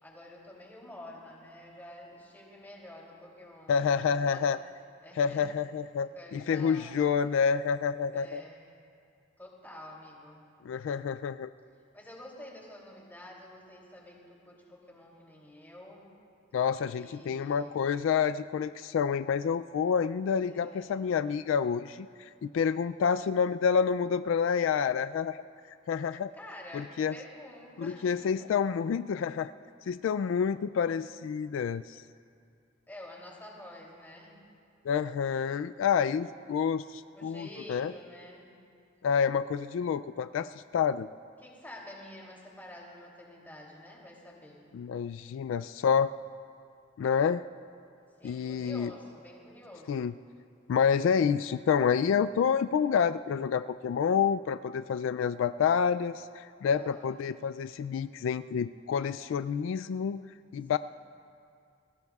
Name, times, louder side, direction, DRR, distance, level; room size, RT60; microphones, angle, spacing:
voice 1, 0.0-4.5 5.0-5.5 6.1-7.0 8.1-8.6 9.4-10.4 11.9-16.0 16.9-17.7 20.4-21.0 26.3-28.5 32.9-34.4 37.1-38.5 41.4-44.6 48.2-50.1 56.7-57.3 60.7-60.8, left 1 dB, 10° left, -3 dB, 2.9 m, -49 dB
voice 2, 3.7-4.6 5.2-8.4 10.6-11.5 16.5-25.4 25.9-26.3 26.7-27.1 27.8-29.5 29.9-32.0 34.8-37.9 39.0-41.1 44.7-46.1 47.0-47.4 48.2-48.9 49.9-50.1 50.7-60.2 60.5-60.8, left 6 dB, 80° left, 13 dB, 0.3 m, -28 dB
28.5 x 19.0 x 2.4 m, 2.4 s
head